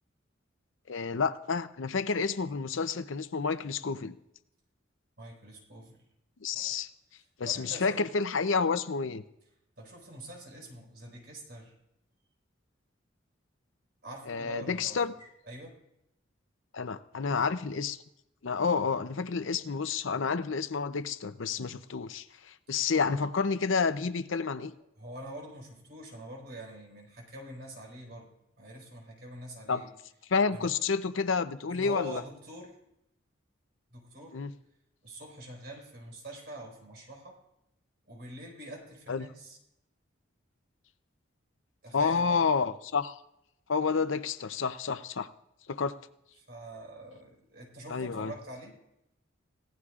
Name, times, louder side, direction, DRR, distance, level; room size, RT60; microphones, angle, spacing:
voice 1, 0.9-4.2 6.4-6.9 7.4-9.2 14.3-15.1 16.7-18.0 18.4-24.7 29.7-29.8 30.3-32.2 34.3-34.5 39.1-39.3 41.9-43.2 43.7-45.3 45.7-46.0 47.9-48.3, left 5 dB, 75° left, 12 dB, 0.7 m, -29 dB
voice 2, 5.2-6.0 6.5-6.7 7.4-8.0 9.8-11.7 14.0-15.8 25.0-28.3 28.6-29.9 30.5-30.8 31.7-32.8 33.9-34.4 35.0-37.4 38.1-39.6 41.8-42.5 46.5-48.8, right 1 dB, 55° right, 0 dB, 4.7 m, -45 dB
24.0 x 17.0 x 2.5 m, 0.83 s
head